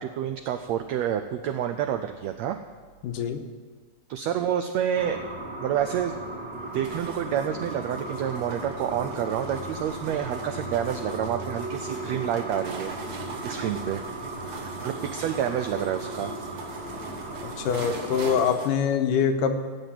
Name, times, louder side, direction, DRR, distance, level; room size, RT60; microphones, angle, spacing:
voice 1, 0.0-2.6 4.1-5.2 5.6-6.1 6.7-12.9 13.4-14.0 14.4-16.3, right 9 dB, 90° right, 8 dB, 1.5 m, -28 dB
voice 2, 3.0-3.4 17.6-19.6, left 7 dB, 85° left, 6 dB, 2.5 m, -24 dB
sound 1, 4.9-18.5, right 1 dB, 25° right, 1.4 m, -36 dB
sound 2, 5.8-18.7, right 4 dB, 55° right, 2.1 m, -42 dB
16.0 x 8.0 x 7.6 m, 1.5 s
omnidirectional pair, 3.8 m